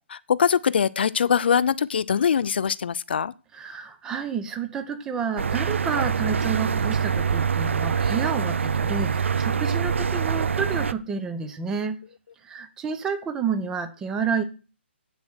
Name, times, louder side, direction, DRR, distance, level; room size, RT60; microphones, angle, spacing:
voice 1, 0.1-3.3, left 7 dB, 55° left, 0.4 m, -22 dB
voice 2, 3.5-12.0 12.4-14.4, right 6 dB, 10° right, 0.8 m, -29 dB
sound 1, 5.4-10.9, right 6 dB, 90° right, 0.6 m, -25 dB
8.9 x 7.4 x 6.3 m
hypercardioid pair, 165°, 6 cm